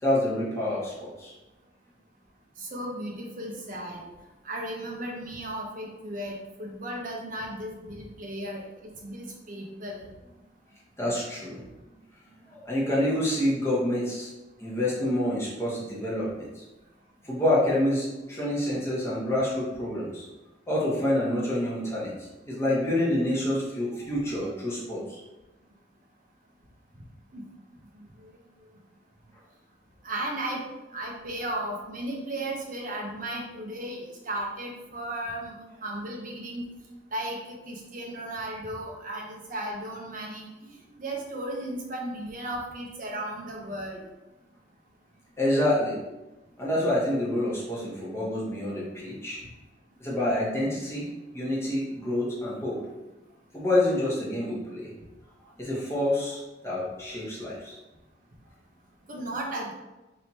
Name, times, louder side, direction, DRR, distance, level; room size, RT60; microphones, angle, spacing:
voice 1, 0.0-1.3 11.0-11.6 12.6-14.3 14.6-16.6 17.3-20.3 20.7-25.2 45.4-46.0 46.6-49.4 50.0-51.1 51.3-52.8 53.5-54.9 55.6-57.8, left 1 dB, 15° left, -6 dB, 1.1 m, -27 dB
voice 2, 2.6-4.0 4.4-10.1 27.3-27.4 28.0-28.3 30.0-30.6 30.9-36.6 37.1-44.0 59.1-59.7, right 1 dB, 50° right, -1 dB, 0.8 m, -35 dB
3.4 x 2.9 x 4.1 m, 1.1 s
head